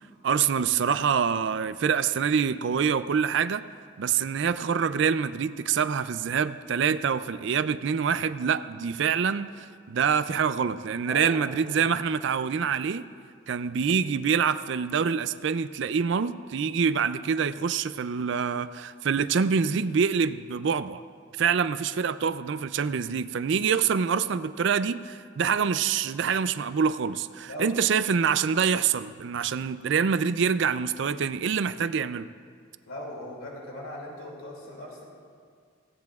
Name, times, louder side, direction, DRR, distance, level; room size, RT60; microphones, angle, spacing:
voice 1, 0.2-3.6 4.0-13.0 13.5-21.0 21.4-32.3, right 6 dB, 60° right, 14 dB, 0.4 m, -26 dB
voice 2, 11.0-11.9 27.5-27.7 32.9-35.0, left 1 dB, 80° left, -2 dB, 2.5 m, -39 dB
18.0 x 16.5 x 2.4 m, 2.1 s
head